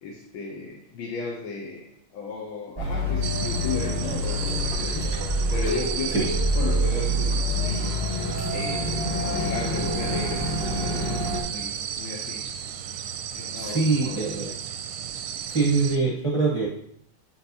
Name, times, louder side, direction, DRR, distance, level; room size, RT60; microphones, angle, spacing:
voice 1, 0.0-5.1 5.5-6.3 6.5-8.0 8.4-12.5 13.3-14.3, left 4 dB, 75° left, -1 dB, 1.6 m, -35 dB
sound 1, 2.7-11.4, left 1 dB, 20° left, 0.7 m, -26 dB
sound 2, 3.2-16.0, right 9 dB, 75° right, 1.2 m, -34 dB
voice 2, 13.6-14.5 15.5-16.7, right 3 dB, 25° right, -5 dB, 0.7 m, -23 dB
8.5 x 4.5 x 2.8 m, 0.69 s
omnidirectional pair, 2.3 m